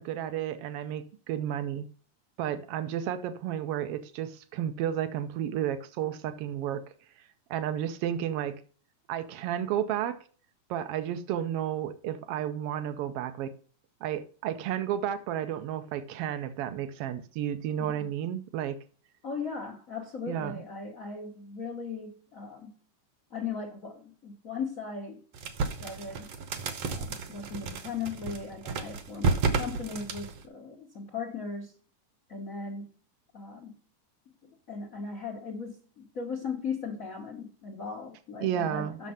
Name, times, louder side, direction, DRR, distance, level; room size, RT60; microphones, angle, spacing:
voice 1, 0.0-1.9 2.4-6.8 7.2-8.5 9.1-10.2 10.7-13.5 14.0-18.8 20.3-20.6 38.4-39.0, right 10 dB, 80° right, 1.3 m, -32 dB
voice 2, 19.2-22.8 23.3-25.2 25.6-26.3 26.8-31.8 32.3-32.9 33.3-33.7 34.4-39.1, left 5 dB, 75° left, 0.7 m, -38 dB
sound 1, 25.3-30.4, right 4 dB, 65° right, 1.7 m, -32 dB
7.5 x 6.4 x 5.6 m
omnidirectional pair, 3.6 m